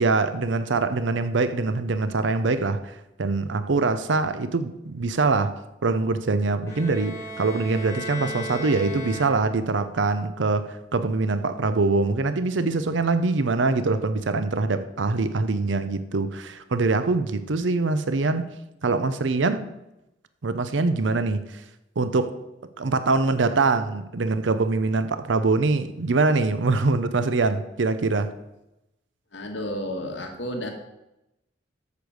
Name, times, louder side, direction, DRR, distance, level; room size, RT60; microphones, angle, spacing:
voice 1, 0.0-5.5 5.8-18.4 18.8-19.6 20.4-21.4 22.0-22.3 22.8-28.3, right 3 dB, 80° right, 0.6 m, -23 dB
Bowed string instrument, 6.7-9.8, equal, 15° left, 2.8 m, -35 dB
voice 2, 29.3-30.7, equal, 75° left, 1.7 m, -31 dB
8.3 x 6.8 x 6.4 m
head